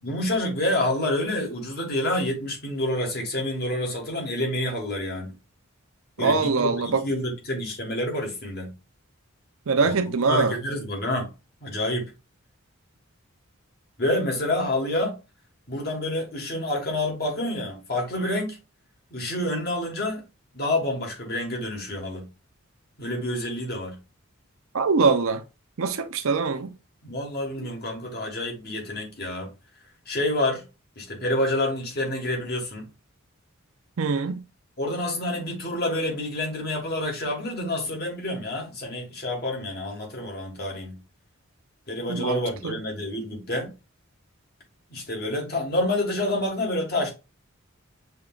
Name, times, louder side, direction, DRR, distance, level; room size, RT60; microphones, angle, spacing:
voice 1, 0.0-5.3 6.2-8.7 9.8-11.3 11.6-12.1 14.0-15.2 15.7-18.6 19.1-20.2 20.5-22.3 23.0-24.0 27.0-29.5 30.1-30.6 31.0-32.9 34.8-41.0 41.9-43.7 44.9-47.1, left 1 dB, 45° left, 1.5 m, -28 dB
voice 2, 6.2-7.0 9.7-10.6 24.7-25.4 25.8-26.7 34.0-34.4 42.1-42.8, right 4 dB, 75° right, 0.5 m, -23 dB
6.3 x 2.9 x 2.4 m
head